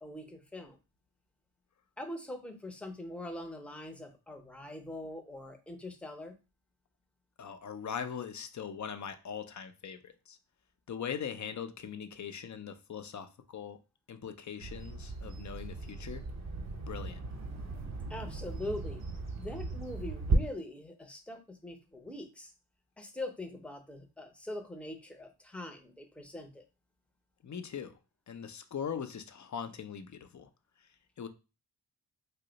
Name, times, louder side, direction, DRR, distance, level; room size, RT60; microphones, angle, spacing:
voice 1, 0.0-0.8 2.0-6.3 18.1-19.0 19.4-22.5 23.0-26.6, left 1 dB, 5° left, 0.6 m, -42 dB
voice 2, 7.4-10.4 10.9-13.8 14.1-16.2 16.9-17.2 27.4-27.9 28.3-30.5 31.2-31.3, left 7 dB, 45° left, 0.5 m, -41 dB
Bird vocalization bird call bird song, 14.6-20.4, right 3 dB, 40° right, 0.7 m, -37 dB
2.7 x 2.1 x 3.9 m
cardioid pair, 55°, 41 cm